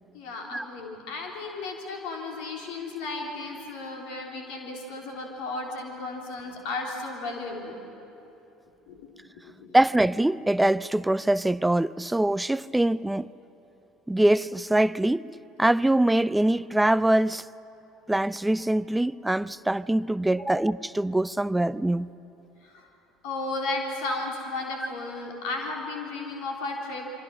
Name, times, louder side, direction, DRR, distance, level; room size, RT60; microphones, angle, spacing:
voice 1, 0.1-7.8 8.9-9.1 9.4-9.8 20.4-20.5 22.6-22.9 23.2-27.2, left 2 dB, 60° left, 3.6 m, -34 dB
voice 2, 9.7-13.3 14.1-15.3 15.6-17.5 18.1-22.1, right 1 dB, 10° right, 0.4 m, -23 dB
26.5 x 25.0 x 6.1 m
figure-of-eight pair, 60°, 0 cm